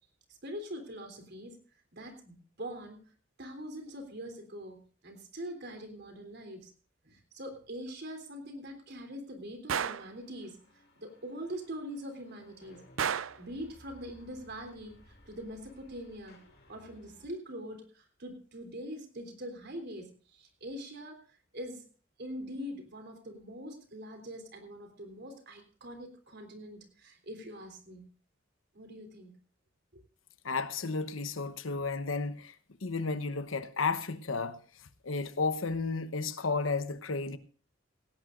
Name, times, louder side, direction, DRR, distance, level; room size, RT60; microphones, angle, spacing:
voice 1, 0.4-1.6 1.9-3.0 3.4-6.7 7.0-10.6 11.0-12.8 13.4-14.9 15.3-16.4 16.7-21.2 21.5-21.8 22.2-28.0 28.7-29.3 29.9-30.0, equal, 60° right, 3.5 m, -43 dB
Gunshot gunfire, 9.7-10.1 13.0-13.5, right 7 dB, 85° right, 0.5 m, -31 dB
sound 1, 10.0-17.2, left 1 dB, 55° left, 3.3 m, -60 dB
voice 2, 30.4-32.5 32.8-34.6 35.0-37.4, left 4 dB, 90° left, 1.0 m, -32 dB
17.5 x 17.0 x 2.6 m
head